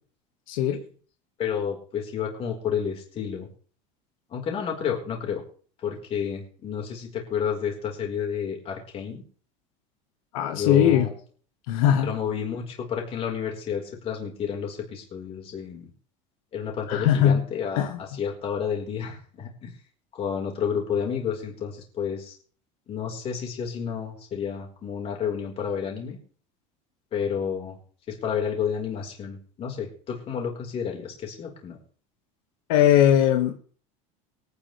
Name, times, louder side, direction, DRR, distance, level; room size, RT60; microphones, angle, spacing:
voice 1, 0.5-0.8 10.3-11.1 11.7-12.1 16.9-17.4 17.8-18.0 32.7-33.6, left 10 dB, 85° left, 4 dB, 1.8 m, -20 dB
voice 2, 1.4-3.5 4.3-5.4 5.8-9.2 10.5-11.1 12.0-15.9 16.5-19.7 20.1-22.3 22.9-26.2 27.1-27.8 28.1-31.8, left 7 dB, 35° left, 1 dB, 4.5 m, -30 dB
23.5 x 10.0 x 3.4 m, 0.44 s
cardioid pair, 150°, 18 cm